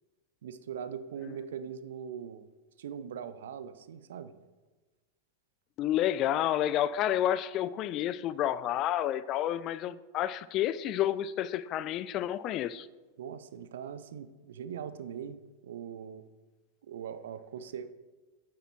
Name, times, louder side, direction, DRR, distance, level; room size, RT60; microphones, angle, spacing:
voice 1, 0.4-2.5 2.8-4.3 13.2-15.4 15.6-16.2 16.8-17.9, right 8 dB, 60° right, 0.5 m, -41 dB
voice 2, 5.8-12.9, left 12 dB, 35° left, 0.3 m, -30 dB
9.2 x 7.5 x 4.4 m
figure-of-eight pair, 90°, 0 cm